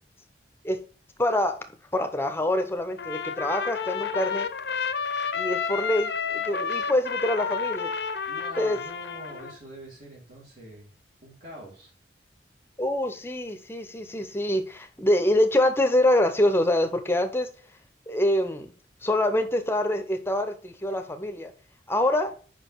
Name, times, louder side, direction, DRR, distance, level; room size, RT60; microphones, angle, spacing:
voice 1, 1.2-1.6 1.9-4.5 5.3-7.9 8.6-8.8 12.8-17.5 18.1-18.7 19.0-21.5 21.9-22.3, left 1 dB, 15° left, 8 dB, 0.7 m, -25 dB
Trumpet, 3.0-9.6, left 6 dB, 65° left, 0.6 m, -30 dB
voice 2, 8.3-10.9 11.2-11.9, right 1 dB, 55° right, -4 dB, 2.0 m, -45 dB
5.3 x 5.1 x 4.5 m, 0.40 s
head